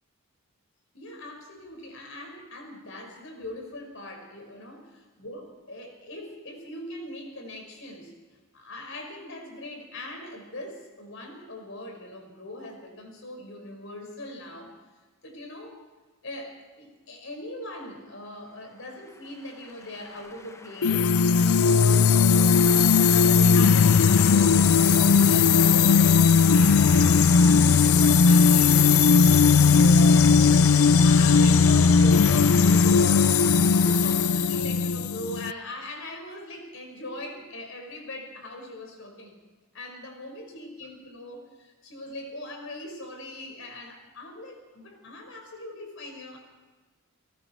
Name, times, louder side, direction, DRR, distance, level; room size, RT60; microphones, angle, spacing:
voice 1, 0.9-4.9 5.2-8.1 8.5-14.7 15.2-15.8 16.2-21.1 21.5-33.4 33.6-39.4 39.7-46.4, left 1 dB, 70° left, 3 dB, 5.5 m, -40 dB
sound 1, 18.8-35.4, left 2 dB, 15° left, 1.0 m, -39 dB
sound 2, 20.8-35.5, left 5 dB, 85° left, 0.5 m, -18 dB
29.5 x 19.0 x 4.6 m, 1.3 s
head